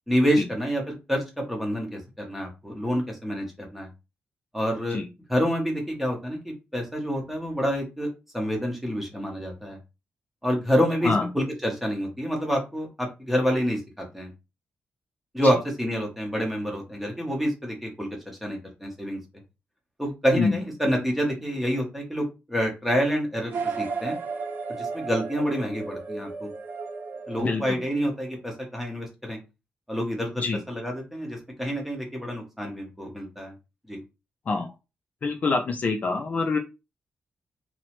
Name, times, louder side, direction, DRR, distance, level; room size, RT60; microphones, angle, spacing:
voice 1, 0.1-3.9 4.5-5.0 5.3-8.1 8.3-9.8 10.4-14.3 15.3-19.2 20.0-24.2 24.7-26.5 27.3-29.4 29.9-33.5 33.9-34.0, equal, 5° right, 1 dB, 0.8 m, -27 dB
sound 1, 23.5-28.3, right 4 dB, 55° right, 0.5 m, -34 dB
voice 2, 35.2-36.6, left 4 dB, 40° left, 3 dB, 0.4 m, -25 dB
2.9 x 2.0 x 2.9 m, 0.27 s
wide cardioid pair, 160°, 4 cm